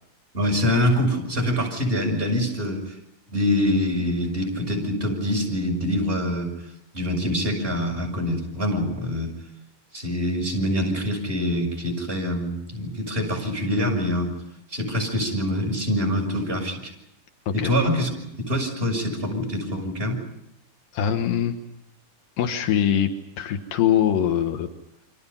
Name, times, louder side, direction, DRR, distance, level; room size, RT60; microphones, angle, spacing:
voice 1, 0.3-3.0 3.3-6.5 6.9-9.3 9.9-14.3 14.7-16.9 17.5-20.2, left 1 dB, 15° right, 1 dB, 6.8 m, -25 dB
voice 2, 20.9-21.6 22.4-23.1 23.4-24.7, left 9 dB, 90° left, 6 dB, 3.2 m, -22 dB
29.0 x 25.5 x 5.7 m, 0.82 s
omnidirectional pair, 3.8 m